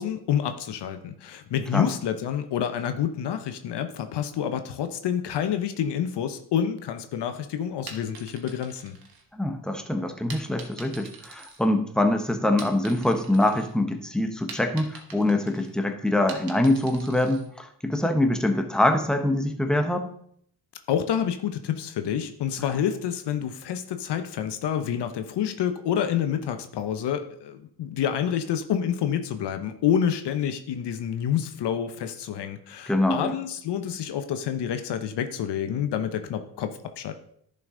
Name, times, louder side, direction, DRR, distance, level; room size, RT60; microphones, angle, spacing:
voice 1, 0.0-9.0 20.9-37.1, left 9 dB, 75° left, 9 dB, 0.9 m, -28 dB
sound 1, 7.7-9.7 10.3-12.1 12.4-13.7 14.1-17.5, right 4 dB, 55° right, 1.8 m, -44 dB
voice 2, 9.3-20.1 32.9-33.3, left 1 dB, ahead, 5 dB, 1.2 m, -24 dB
10.5 x 5.8 x 3.8 m, 0.64 s
cardioid pair, 70°, 41 cm